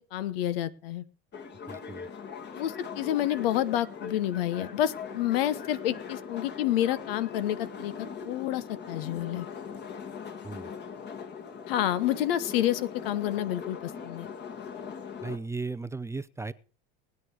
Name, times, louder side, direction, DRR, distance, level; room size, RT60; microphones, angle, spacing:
voice 1, 0.1-1.0 2.5-9.5 11.7-14.3, left 12 dB, 75° left, 15 dB, 1.1 m, -29 dB
sound 1, 1.3-15.4, left 6 dB, 35° left, 1.8 m, -41 dB
voice 2, 1.7-2.1 10.4-10.7 15.2-16.5, right 3 dB, 10° right, 14 dB, 0.5 m, -36 dB
19.5 x 9.4 x 4.8 m, 0.38 s
hypercardioid pair, 95°, 29 cm